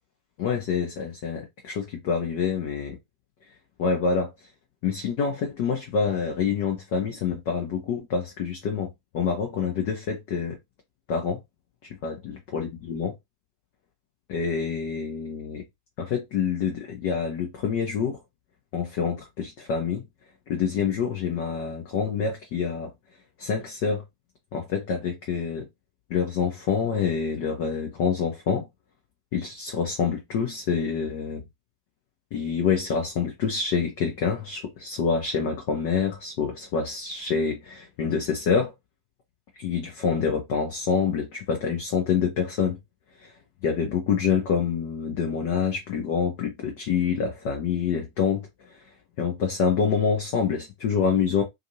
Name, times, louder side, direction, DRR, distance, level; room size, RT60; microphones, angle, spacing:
voice 1, 0.4-3.0 3.8-4.3 4.8-10.6 11.1-11.4 12.0-13.1 14.3-15.6 16.0-18.2 18.7-20.0 20.5-22.9 23.4-24.0 24.5-25.7 26.1-28.7 29.3-31.4 32.3-38.7 39.6-42.8 43.2-43.3 43.6-48.8 49.2-51.4, left 6 dB, 45° left, 0.8 m, -26 dB
2.6 x 2.5 x 2.8 m
figure-of-eight pair, 90°, 0 cm